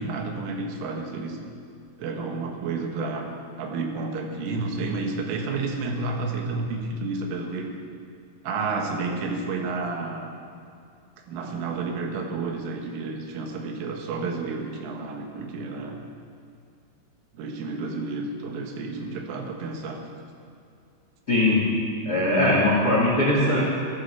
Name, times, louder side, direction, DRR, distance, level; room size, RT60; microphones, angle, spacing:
voice 1, 0.0-1.4 2.0-3.3 3.6-7.7 8.4-10.3 11.3-16.0 17.3-20.0, right 3 dB, 75° right, 2 dB, 4.0 m, -30 dB
voice 2, 21.3-21.8 22.0-23.6, left 1 dB, 30° left, -5 dB, 2.0 m, -20 dB
14.5 x 14.0 x 7.0 m, 2.5 s
omnidirectional pair, 5.9 m